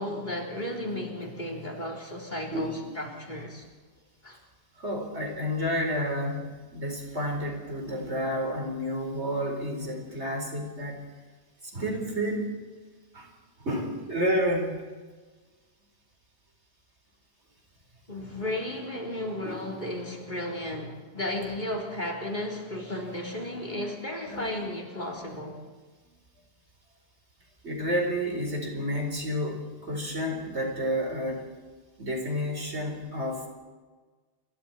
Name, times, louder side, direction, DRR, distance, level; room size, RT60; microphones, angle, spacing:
voice 1, 0.0-3.6 4.2-4.4 18.1-25.6, left 1 dB, 45° left, 0 dB, 4.1 m, -34 dB
voice 2, 2.5-3.0 4.8-11.0 11.7-12.5 13.1-13.3 13.6-14.8 19.4-19.7 24.3-24.5 27.6-31.4 32.0-33.5, equal, 90° right, 2 dB, 5.0 m, -30 dB
28.5 x 22.5 x 4.5 m, 1.4 s
omnidirectional pair, 1.1 m